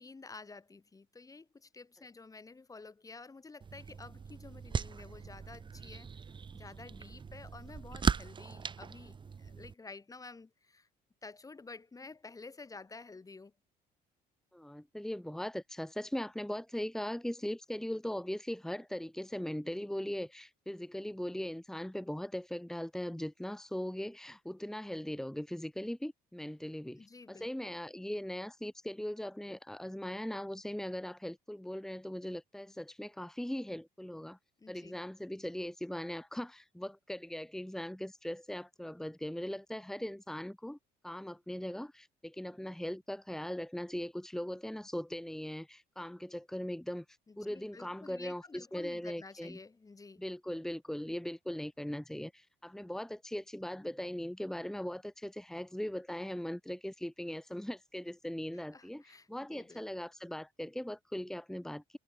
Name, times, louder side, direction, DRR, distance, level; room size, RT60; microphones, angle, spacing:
voice 1, 0.0-6.1 6.5-10.9 11.2-13.5 27.0-27.7 34.6-35.0 47.3-50.2 58.5-59.8, left 3 dB, 20° left, 2.4 m, -51 dB
sound 1, 3.6-9.7, right 6 dB, 30° right, 1.1 m, -38 dB
voice 2, 14.5-34.4 34.7-40.8 41.0-47.1 47.4-49.6 50.2-62.0, left 1 dB, 5° left, 2.0 m, -39 dB
cardioid pair, 110°, 17 cm